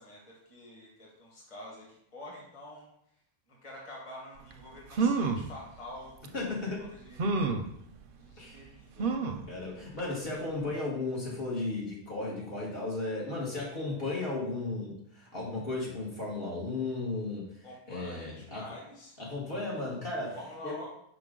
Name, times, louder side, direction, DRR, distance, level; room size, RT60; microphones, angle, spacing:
voice 1, 0.0-2.9 3.5-6.5 6.8-7.4 8.2-9.1 17.6-19.2 20.3-20.9, left 1 dB, 25° left, -3 dB, 1.6 m, -47 dB
sound 1, 4.5-4.6 4.9-5.5 6.2-6.3 7.2-7.7 9.0-9.5 10.0-10.1 10.4-10.5, right 4 dB, 55° right, 0.7 m, -28 dB
voice 2, 6.3-6.9 8.4-8.7 9.5-18.6 19.2-20.4 20.6-20.8, left 2 dB, 50° left, -5 dB, 1.8 m, -35 dB
6.0 x 5.0 x 3.8 m, 0.71 s
omnidirectional pair, 1.2 m